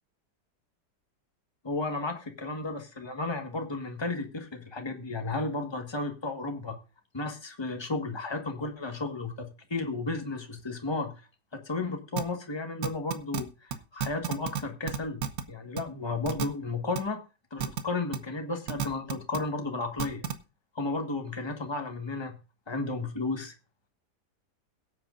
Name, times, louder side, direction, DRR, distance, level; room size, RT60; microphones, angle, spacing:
voice 1, 1.6-6.8 7.1-11.1 11.5-15.2 15.5-17.2 17.5-20.2 20.7-22.4 22.7-23.5, left 3 dB, 15° left, 4 dB, 1.5 m, -33 dB
sound 1, 12.2-12.3 12.8-13.4 13.7-13.8 14.0-14.6 14.9-15.4 15.8-15.9 16.3-16.5 17.0-17.1 17.6-17.8 18.1-18.2 18.7-19.4 20.0-20.3, right 8 dB, 60° right, 1.4 m, -30 dB
22.0 x 8.4 x 2.6 m, 0.31 s
omnidirectional pair, 1.8 m